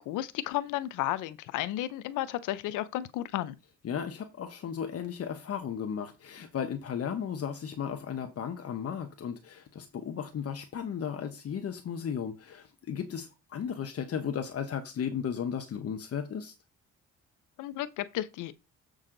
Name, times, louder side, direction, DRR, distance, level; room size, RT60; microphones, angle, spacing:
voice 1, 0.0-3.5 17.6-18.5, left 14 dB, 90° left, 0.6 m, -33 dB
voice 2, 3.8-16.5, left 7 dB, 50° left, 1.1 m, -35 dB
7.3 x 6.4 x 3.8 m
cardioid pair, 90°, 30 cm